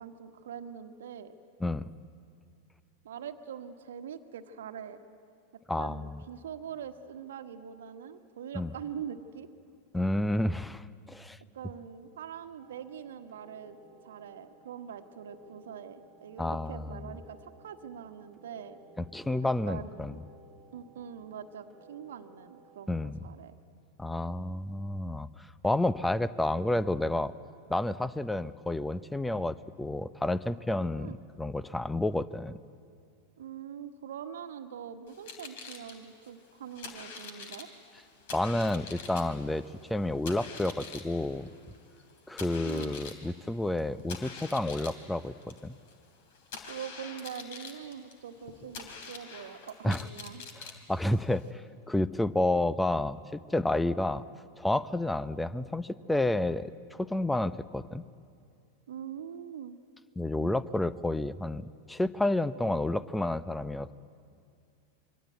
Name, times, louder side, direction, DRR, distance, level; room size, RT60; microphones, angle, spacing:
voice 1, 0.0-1.3 3.0-5.0 5.5-9.5 11.5-13.8 14.0-18.8 19.6-20.2 20.7-23.5 30.9-31.2 33.4-37.7 42.6-43.0 46.6-50.4 58.9-59.8 60.4-60.5, right 8 dB, 60° right, 8 dB, 1.4 m, -43 dB
voice 2, 5.7-6.2 8.5-8.7 9.9-11.4 16.4-17.1 19.0-20.2 22.9-23.2 24.0-27.3 27.7-32.5 38.3-39.6 39.9-41.5 42.3-45.8 49.8-50.0 50.6-51.6 51.9-54.2 54.6-58.0 60.2-63.9, left 1 dB, 5° left, 17 dB, 0.7 m, -30 dB
sound 1, 12.6-22.9, right 2 dB, 10° right, 2.9 m, -58 dB
sound 2, 35.1-51.5, left 5 dB, 50° left, 3.2 m, -46 dB
26.5 x 23.5 x 8.2 m, 2.3 s
figure-of-eight pair, 90°, 0 cm